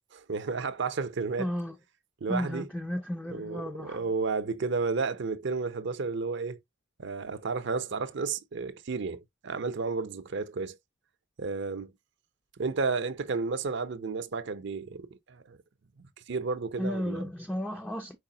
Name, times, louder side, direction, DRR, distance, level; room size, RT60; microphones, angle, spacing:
voice 1, 0.1-1.5 2.2-2.7 3.3-6.6 7.0-10.8 11.4-11.9 12.6-15.6 16.0-17.2, right 4 dB, 60° right, 0.6 m, -32 dB
voice 2, 1.4-1.8 2.3-4.0 16.8-18.2, left 1 dB, 5° left, 0.4 m, -33 dB
4.9 x 4.1 x 2.7 m
head